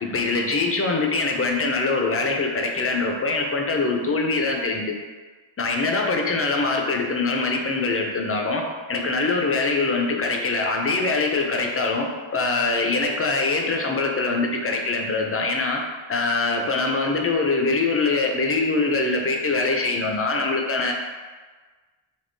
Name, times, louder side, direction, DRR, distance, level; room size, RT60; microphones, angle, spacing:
voice 1, 0.0-5.0 5.6-15.8 16.1-20.9, left 3 dB, 30° left, 2 dB, 0.4 m, -23 dB
3.5 x 2.7 x 2.6 m, 1.4 s
wide cardioid pair, 75°, 49 cm